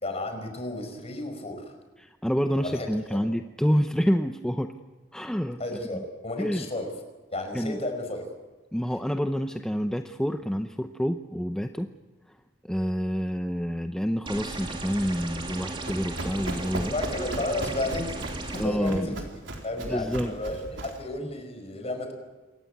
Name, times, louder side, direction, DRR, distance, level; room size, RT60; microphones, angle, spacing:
voice 1, 0.0-1.6 2.6-2.9 5.6-6.9 7.3-8.3 16.9-19.1 19.6-22.1, left 2 dB, 35° left, 5 dB, 5.0 m, -32 dB
voice 2, 2.0-4.7 5.1-5.6 5.9-6.0 6.4-6.7 7.5-7.8 8.7-11.9 12.7-16.9 18.6-19.1 19.8-20.3, equal, 5° left, 6 dB, 0.7 m, -28 dB
sound 1, 14.3-18.7, right 2 dB, 30° right, 2.7 m, -36 dB
Run, 15.5-21.1, right 1 dB, 80° right, 4.2 m, -37 dB
28.0 x 14.5 x 9.5 m, 1.2 s
head